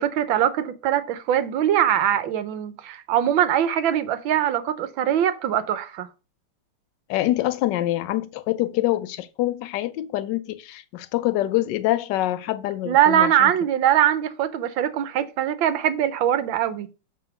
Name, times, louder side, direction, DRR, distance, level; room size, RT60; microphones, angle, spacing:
voice 1, 0.0-6.1 12.9-16.9, right 10 dB, 70° right, 1.4 m, -22 dB
voice 2, 7.1-13.5, left 15 dB, 75° left, 1.0 m, -25 dB
7.1 x 3.5 x 5.9 m
omnidirectional pair, 2.4 m